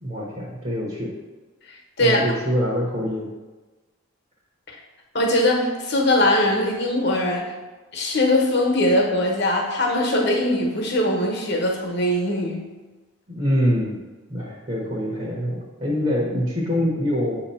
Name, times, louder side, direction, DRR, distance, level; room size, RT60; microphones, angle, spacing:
voice 1, 0.0-1.1 2.0-3.3 13.3-14.0 14.3-17.4, equal, 35° right, -4 dB, 1.0 m, -24 dB
voice 2, 1.7-2.2 4.7-4.8 5.1-7.5 7.9-12.6, left 1 dB, 50° left, 1 dB, 1.1 m, -21 dB
7.5 x 2.9 x 5.5 m, 1.2 s
head